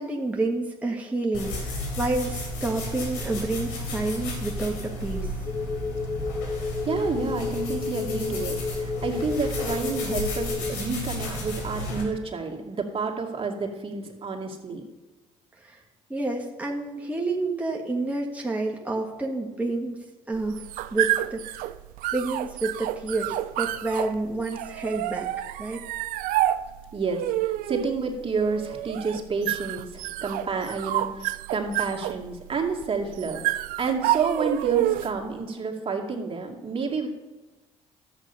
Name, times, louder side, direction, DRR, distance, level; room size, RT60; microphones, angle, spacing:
voice 1, 0.0-5.3 15.6-15.8 16.1-21.6 22.1-25.3 25.6-25.8, right 2 dB, 10° right, -1 dB, 1.6 m, -29 dB
sound 1, 1.3-12.0, left 1 dB, 85° left, 3.6 m, -33 dB
sound 2, 5.5-10.7, left 4 dB, 25° left, 0.4 m, -32 dB
voice 2, 6.8-14.8 26.9-37.1, right 4 dB, 40° right, 1 dB, 2.2 m, -30 dB
sound 3, 20.3-35.3, right 15 dB, 75° right, 0.5 m, -29 dB
12.0 x 8.2 x 5.5 m, 1.2 s
supercardioid pair, 70°, 14 cm